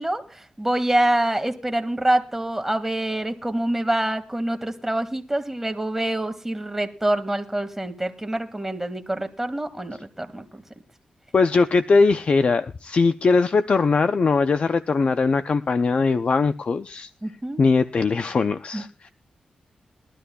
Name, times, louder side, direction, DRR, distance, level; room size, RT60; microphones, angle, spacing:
voice 1, 0.0-10.6 17.2-17.6 18.7-18.8, right 1 dB, 10° right, 7 dB, 1.9 m, -26 dB
voice 2, 11.3-17.1 17.6-19.1, left 4 dB, 55° left, 10 dB, 0.6 m, -20 dB
21.5 x 12.5 x 2.3 m, 0.35 s
cardioid pair, 80°, 3 cm